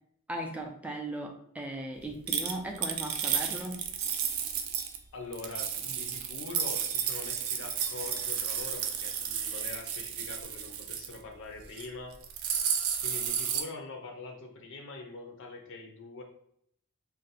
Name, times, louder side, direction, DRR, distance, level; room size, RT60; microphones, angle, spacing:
voice 1, 0.3-3.8, right 1 dB, 5° right, 2 dB, 0.4 m, -37 dB
sound 1, 2.3-5.0 5.3-11.2 11.6-11.9 12.1-13.6, right 8 dB, 70° right, 0.4 m, -32 dB
voice 2, 5.1-12.2 13.0-16.2, left 3 dB, 60° left, 2 dB, 0.5 m, -43 dB
2.6 x 2.1 x 4.0 m, 0.69 s
head